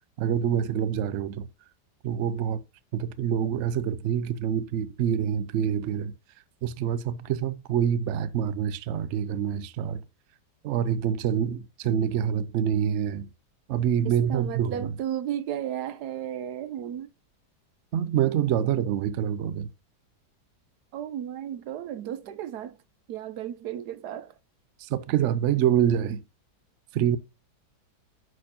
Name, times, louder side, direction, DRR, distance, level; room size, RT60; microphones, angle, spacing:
voice 1, 0.2-1.5 2.0-2.6 2.9-6.1 6.6-10.0 10.6-13.3 13.7-14.9 17.9-19.7 24.8-26.2 26.9-27.2, right 9 dB, 85° right, 0.6 m, -26 dB
voice 2, 14.0-17.1 20.9-22.8 23.1-24.3, right 10 dB, 70° right, 1.2 m, -34 dB
11.0 x 4.4 x 2.9 m
omnidirectional pair, 1.9 m